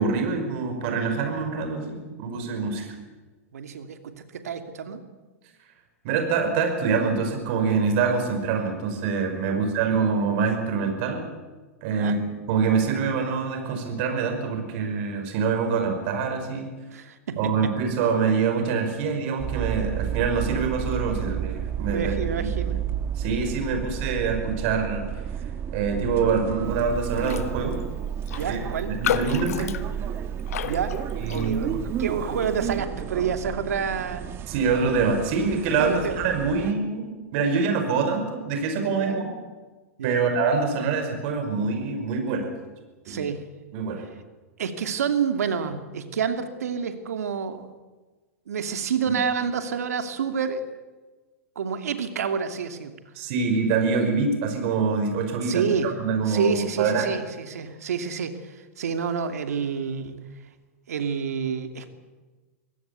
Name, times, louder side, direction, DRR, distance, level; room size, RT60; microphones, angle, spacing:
voice 1, 0.0-2.9 6.0-11.2 11.8-12.2 12.5-16.7 17.4-22.2 22.4-22.7 23.2-25.0 25.7-27.8 28.5-28.6 28.9-29.8 31.2-31.7 34.5-39.3 40.0-42.5 43.1-43.3 43.7-44.1 49.1-49.2 53.2-57.1, right 5 dB, 50° right, 5 dB, 5.5 m, -25 dB
voice 2, 3.5-5.0 9.4-9.6 11.9-12.2 16.9-17.7 21.9-22.8 28.3-28.9 30.6-31.0 31.3-34.3 35.8-36.2 38.9-39.2 40.0-40.2 43.0-43.4 44.6-47.7 48.5-50.6 51.6-52.9 55.4-55.9 56.2-60.2 60.9-61.9, right 6 dB, 85° right, 7 dB, 2.7 m, -28 dB
sound 1, 19.4-36.7, right 9 dB, 30° right, 1.6 m, -32 dB
Raindrop, 27.2-27.5 27.8-27.9 28.3-31.8 32.3-32.6, left 10 dB, 75° left, 1.4 m, -32 dB
24.0 x 17.0 x 8.4 m, 1.3 s
hypercardioid pair, 130°, 8 cm